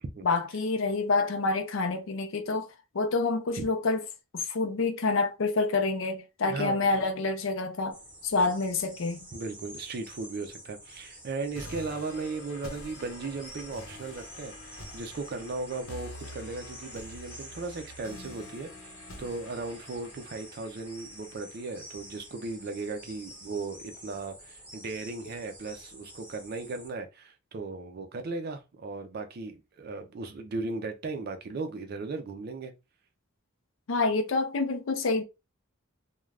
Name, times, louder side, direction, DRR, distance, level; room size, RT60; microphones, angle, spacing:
voice 1, 0.2-2.7 2.9-4.0 4.3-9.2 33.9-35.2, left 3 dB, 65° left, 0.5 m, -27 dB
voice 2, 6.5-6.9 9.3-18.7 19.2-32.7, right 3 dB, 50° right, 0.4 m, -37 dB
sound 1, 7.9-26.9, equal, 5° right, 0.9 m, -49 dB
sound 2, 11.5-22.5, left 1 dB, 90° left, 0.8 m, -47 dB
2.4 x 2.2 x 3.2 m
head